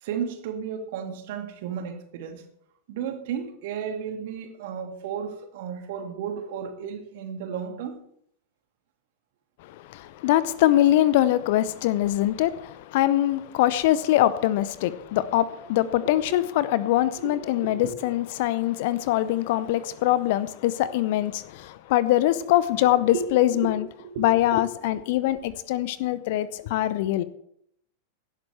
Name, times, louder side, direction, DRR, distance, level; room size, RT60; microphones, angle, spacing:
voice 1, 0.0-2.4 2.9-8.0 17.2-18.0 23.1-23.2 23.5-24.3 24.5-24.6, right 7 dB, 50° right, 2.1 m, -33 dB
voice 2, 9.6-23.9 24.2-27.2, left 14 dB, 50° left, 0.7 m, -23 dB
17.0 x 11.5 x 3.3 m
figure-of-eight pair, 90°, 0 cm